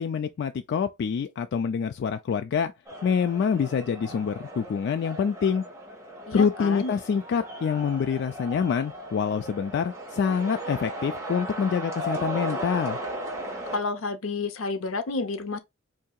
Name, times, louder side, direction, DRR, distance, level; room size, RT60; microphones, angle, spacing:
voice 1, 0.0-2.7 3.0-5.6 6.3-13.0, left 6 dB, 55° left, 0.3 m, -26 dB
sound 1, 2.9-13.8, right 1 dB, 15° right, 1.4 m, -36 dB
voice 2, 6.3-6.9 13.7-15.6, left 3 dB, 80° left, 0.7 m, -30 dB
4.5 x 2.7 x 2.3 m
head